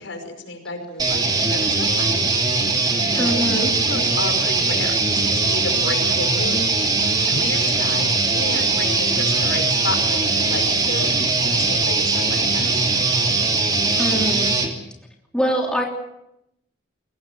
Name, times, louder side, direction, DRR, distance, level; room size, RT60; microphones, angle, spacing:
voice 1, 0.0-2.3 2.6-3.4 3.7-6.8 7.3-12.9, left 2 dB, 75° left, 5 dB, 5.5 m, -32 dB
sound 1, 1.0-14.7, right 3 dB, 20° right, 2.8 m, -20 dB
voice 2, 3.2-3.7 14.0-14.6 15.3-15.8, equal, 5° left, 0 dB, 3.1 m, -23 dB
23.0 x 18.0 x 7.7 m, 0.82 s
head